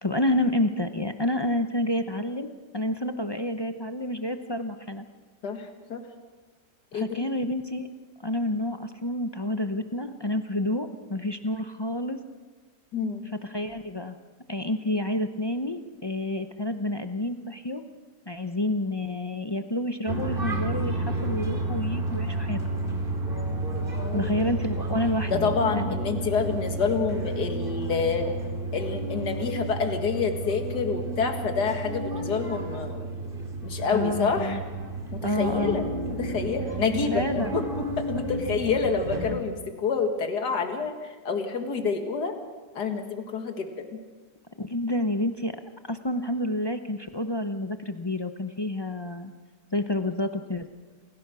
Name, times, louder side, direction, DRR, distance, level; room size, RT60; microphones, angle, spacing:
voice 1, 0.0-2.5 2.7-5.1 6.9-7.9 8.2-12.2 13.5-14.2 14.5-17.8 18.3-22.6 24.1-26.0 33.9-34.6 35.2-35.8 37.1-37.6 44.6-45.6 45.9-49.3 49.7-50.7, left 1 dB, 35° left, 7 dB, 0.4 m, -29 dB
voice 2, 5.4-6.0 6.9-7.3 12.9-13.2 24.0-24.3 25.3-28.3 28.7-33.0 33.6-34.6 35.1-35.9 36.2-42.3 42.8-43.8, left 5 dB, 75° left, 5 dB, 2.3 m, -28 dB
sound 1, 20.1-39.4, right 2 dB, 30° right, 2.9 m, -31 dB
28.0 x 16.0 x 6.2 m, 1.3 s
omnidirectional pair, 1.8 m